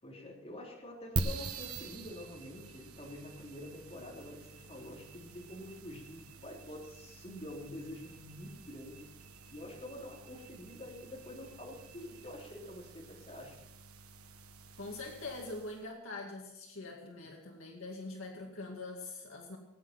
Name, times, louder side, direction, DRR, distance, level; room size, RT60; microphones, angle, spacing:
voice 1, 0.0-9.1 9.5-13.7, left 1 dB, 30° left, -3 dB, 3.6 m, -47 dB
sound 1, 1.2-15.9, right 3 dB, 90° right, 1.2 m, -45 dB
voice 2, 14.7-19.6, left 2 dB, 65° left, 0 dB, 2.3 m, -43 dB
19.0 x 9.4 x 5.8 m, 0.90 s
head